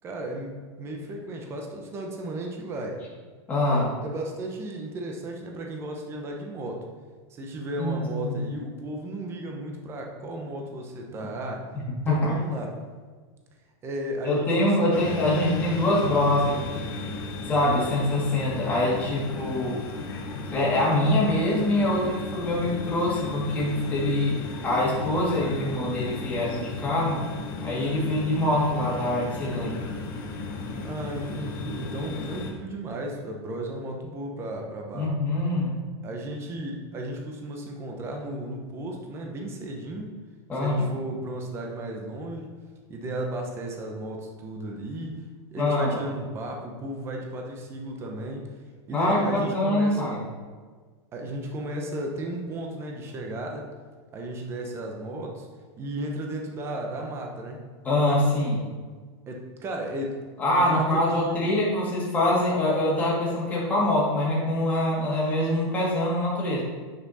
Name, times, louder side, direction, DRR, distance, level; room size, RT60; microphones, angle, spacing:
voice 1, 0.0-3.0 3.7-6.8 7.3-11.7 12.1-12.7 13.8-15.5 16.2-16.4 30.8-35.1 36.0-40.1 40.6-42.5 42.9-45.2 45.5-48.5 48.9-50.1 51.1-53.7 54.1-55.5 55.8-57.7 59.3-61.5, right 1 dB, 15° right, 1 dB, 0.8 m, -34 dB
voice 2, 3.5-3.9 7.8-8.4 12.1-12.3 14.2-16.9 17.5-19.8 20.5-24.4 24.6-27.2 27.6-29.8 34.9-35.8 40.5-40.8 45.6-46.0 48.9-50.2 57.8-58.6 60.4-66.6, left 1 dB, 10° left, -7 dB, 2.0 m, -24 dB
sound 1, 14.9-32.5, left 3 dB, 50° left, 1.4 m, -35 dB
8.7 x 5.9 x 4.1 m, 1.5 s
supercardioid pair, 165°, 16 cm